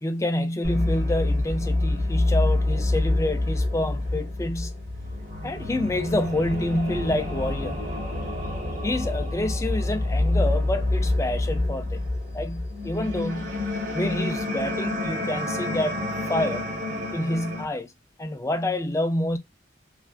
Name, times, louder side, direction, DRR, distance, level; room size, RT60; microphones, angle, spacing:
voice 1, 0.0-4.7 5.4-7.8 8.8-12.1 12.3-13.6 13.9-16.0 16.3-16.6 17.1-17.9 18.2-19.4, left 1 dB, 15° left, 0.4 m, -27 dB
sound 1, 0.6-17.6, left 2 dB, 45° right, 1.5 m, -27 dB
3.3 x 2.2 x 2.3 m
head